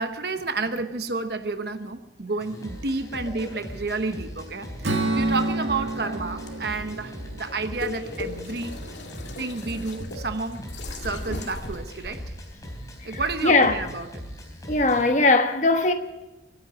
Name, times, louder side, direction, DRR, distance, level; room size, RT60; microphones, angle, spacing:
voice 1, 0.0-8.8 9.4-10.6 10.9-12.3 13.0-14.2, right 3 dB, 60° right, 1.0 m, -30 dB
sound 1, 2.4-15.1, equal, 20° left, 3.8 m, -40 dB
Strum, 4.8-9.0, right 2 dB, 80° right, 2.3 m, -30 dB
sound 2, 6.4-12.5, left 2 dB, 70° left, 2.3 m, -38 dB
voice 2, 13.0-13.8 14.7-15.9, left 2 dB, 40° left, 1.1 m, -20 dB
24.5 x 10.0 x 5.8 m
head